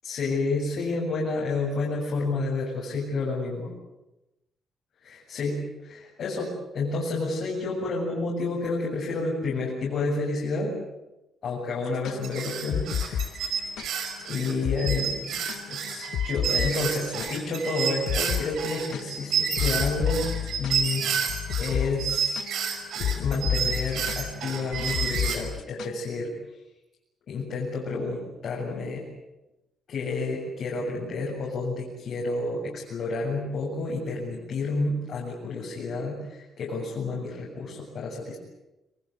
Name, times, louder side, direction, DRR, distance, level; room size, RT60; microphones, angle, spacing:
voice 1, 0.0-3.7 5.0-10.7 11.4-13.6 14.2-21.1 21.6-22.4 22.9-26.3 27.3-29.1 29.9-38.4, left 3 dB, 60° left, -4 dB, 7.7 m, -30 dB
sound 1, 11.9-13.9 14.2-14.3 14.6-15.0 15.3-17.7 18.1-18.4 18.7-26.0, left 9 dB, 80° left, 1.3 m, -31 dB
sound 2, 12.2-21.7 22.0-25.4, right 7 dB, 75° right, 5.6 m, -30 dB
27.0 x 22.5 x 8.1 m, 0.95 s
cardioid pair, 135°, 0 cm